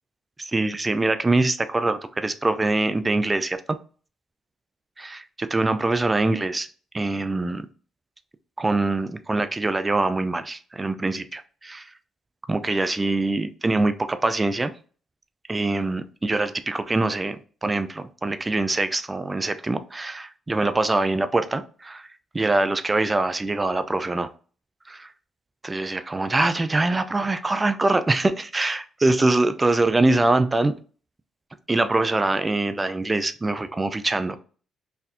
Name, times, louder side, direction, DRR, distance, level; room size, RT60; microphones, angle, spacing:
voice 1, 0.4-3.8 5.0-6.7 6.9-7.6 8.6-11.9 12.5-14.7 15.5-22.1 22.3-24.3 24.9-25.1 25.6-30.8 31.7-34.4, right 2 dB, 20° right, 11 dB, 0.4 m, -24 dB
4.1 x 2.6 x 2.6 m, 0.40 s
cardioid pair, 90°, 0 cm